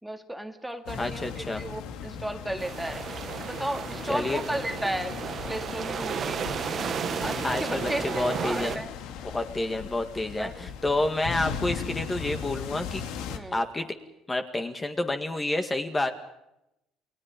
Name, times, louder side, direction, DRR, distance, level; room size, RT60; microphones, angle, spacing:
voice 1, 0.0-3.1 3.4-5.2 5.5-6.4 7.2-8.9 10.4-10.7 13.3-13.6, right 1 dB, 5° right, 6 dB, 2.0 m, -34 dB
sound 1, 0.9-13.4, left 7 dB, 80° left, 2.7 m, -38 dB
voice 2, 1.0-1.6 4.1-4.4 7.4-8.8 9.2-13.0 13.5-13.9 14.3-16.1, left 2 dB, 15° left, 6 dB, 1.9 m, -29 dB
sound 2, 2.6-8.8, right 7 dB, 40° right, 1.1 m, -33 dB
29.5 x 21.5 x 5.3 m, 0.84 s
cardioid pair, 140°, 0 cm